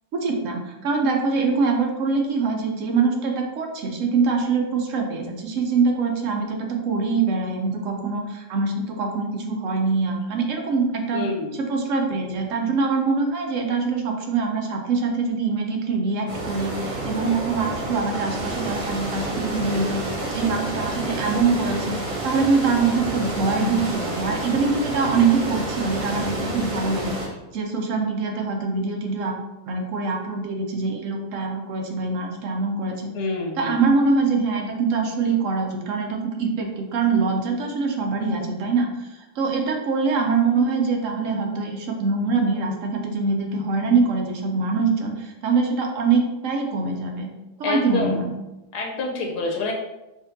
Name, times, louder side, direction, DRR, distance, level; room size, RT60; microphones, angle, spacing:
voice 1, 0.1-20.0 20.3-22.0 22.2-29.3 29.7-33.1 33.6-47.3 47.6-48.3, right 4 dB, 65° right, 2 dB, 0.8 m, -24 dB
voice 2, 11.1-11.6 33.1-33.7 47.6-48.2 48.7-49.7, left 3 dB, 80° left, -1 dB, 1.2 m, -27 dB
sound 1, 16.3-27.3, right 2 dB, 45° right, 0.4 m, -29 dB
4.9 x 2.5 x 2.6 m, 0.99 s
omnidirectional pair, 1.7 m